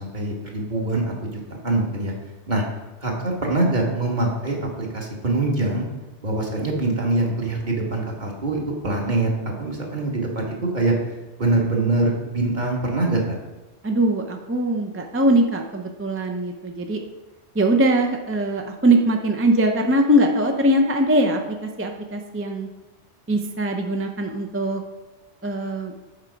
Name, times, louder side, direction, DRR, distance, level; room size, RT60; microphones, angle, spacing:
voice 1, 0.0-2.1 2.5-2.6 3.0-5.9 6.2-10.9 11.4-13.2, right 2 dB, 40° right, -1 dB, 1.5 m, -24 dB
voice 2, 13.8-17.0 17.6-21.4 21.8-22.7 23.3-24.8 25.4-25.9, right 1 dB, 20° right, 3 dB, 0.3 m, -21 dB
7.4 x 4.6 x 5.1 m, 1.1 s
omnidirectional pair, 1.2 m